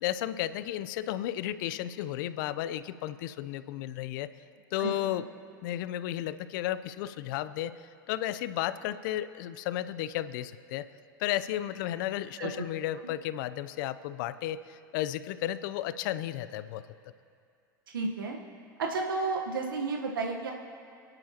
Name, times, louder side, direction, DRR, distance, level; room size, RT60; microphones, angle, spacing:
voice 1, 0.0-4.3 4.7-5.2 5.6-7.7 8.1-10.9 11.2-16.8, left 13 dB, 70° left, 14 dB, 0.6 m, -33 dB
voice 2, 4.8-5.2 12.4-12.7 17.9-18.4 18.8-20.5, right 3 dB, 85° right, 1 dB, 1.2 m, -32 dB
28.5 x 11.0 x 2.9 m, 2.4 s
hypercardioid pair, 85°, 11 cm